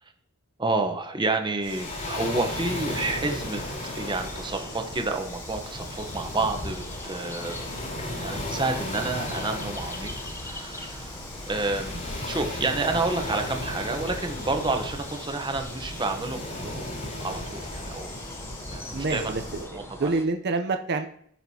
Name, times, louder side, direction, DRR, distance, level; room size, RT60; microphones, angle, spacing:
voice 1, 0.6-3.6 3.9-7.6 8.2-10.1 10.4-18.2 18.7-19.5 19.7-20.2, right 3 dB, 20° right, 5 dB, 0.9 m, -30 dB
Waves surf, 1.6-19.7, left 1 dB, 40° left, 3.8 m, -35 dB
sound 1, 1.8-20.3, left 1 dB, 10° left, 0.7 m, -43 dB
voice 2, 18.9-19.7 20.0-21.1, right 3 dB, 50° right, 6 dB, 0.6 m, -27 dB
15.5 x 5.9 x 2.8 m, 0.66 s
head